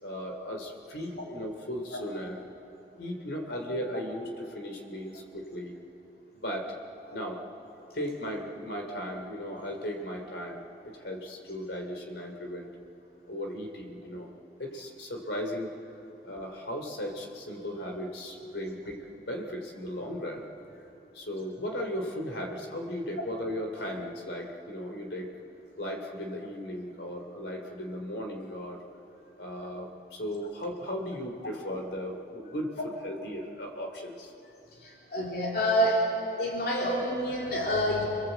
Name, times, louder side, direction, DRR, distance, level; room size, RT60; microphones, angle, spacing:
voice 1, 0.0-2.4 3.0-5.7 6.4-6.8 7.1-7.4 7.9-12.7 13.3-14.3 14.6-15.7 16.2-20.4 21.1-25.3 25.8-28.8 29.4-32.7 33.0-34.3, equal, 75° left, 3 dB, 3.3 m, -36 dB
voice 2, 34.8-36.1 36.4-38.0, equal, 55° left, -3 dB, 3.1 m, -27 dB
27.5 x 21.0 x 8.1 m, 3.0 s
head